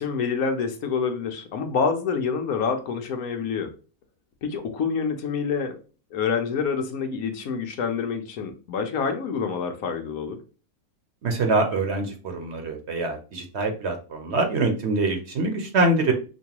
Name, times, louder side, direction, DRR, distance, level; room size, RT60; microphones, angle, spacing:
voice 1, 0.0-3.7 4.4-5.8 6.1-10.4, left 5 dB, 75° left, 6 dB, 1.2 m, -27 dB
voice 2, 11.2-16.1, right 2 dB, 55° right, 4 dB, 1.1 m, -24 dB
5.6 x 2.3 x 2.9 m, 0.36 s
omnidirectional pair, 1.5 m